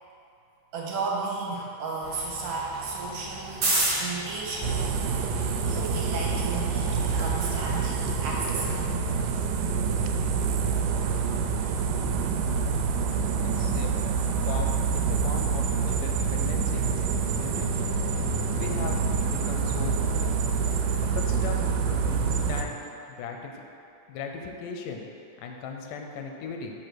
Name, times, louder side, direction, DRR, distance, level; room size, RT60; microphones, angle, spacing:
voice 1, 0.7-3.7 4.0-5.0 5.6-8.9, right 4 dB, 70° right, -3 dB, 1.9 m, -33 dB
sound 1, 2.0-8.8, right 1 dB, 45° right, 1.4 m, -34 dB
sound 2, 4.6-22.6, right 5 dB, 90° right, 2.2 m, -27 dB
voice 2, 13.4-13.9 14.5-16.9 17.3-17.7 18.5-20.0 21.1-22.8 23.1-23.6 24.1-25.0 25.4-26.7, left 5 dB, 90° left, 3 dB, 2.3 m, -37 dB
6.5 x 4.1 x 6.1 m, 2.6 s
omnidirectional pair, 3.6 m